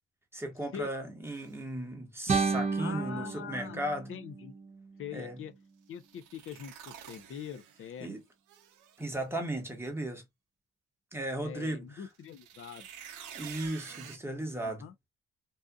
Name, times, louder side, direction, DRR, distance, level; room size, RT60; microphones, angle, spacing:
voice 1, 0.3-4.1 5.1-5.4 8.0-8.2 9.0-10.2 11.1-12.1 13.3-14.8, right 1 dB, 10° right, 1.0 m, -36 dB
sound 1, 1.2-1.5 5.9-8.0 8.5-9.1 12.1-14.2, right 9 dB, 85° right, 0.6 m, -49 dB
sound 2, 2.3-5.3, right 4 dB, 25° right, 0.6 m, -33 dB
voice 2, 2.8-3.8 4.1-4.5 5.0-5.5 5.9-8.1 11.4-12.9 14.6-14.9, left 8 dB, 45° left, 0.5 m, -43 dB
2.7 x 2.4 x 2.3 m
cardioid pair, 90°, 30 cm